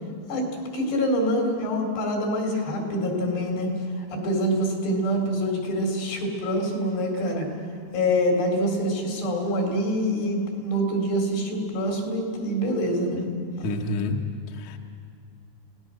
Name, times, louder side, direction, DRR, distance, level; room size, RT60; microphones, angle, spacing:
voice 1, 0.3-3.7 4.1-7.5 7.9-13.2, equal, 75° left, 1 dB, 6.0 m, -25 dB
voice 2, 13.6-14.1 14.5-14.8, left 2 dB, 60° left, 2 dB, 2.1 m, -28 dB
28.5 x 18.5 x 6.6 m, 2.4 s
omnidirectional pair, 4.9 m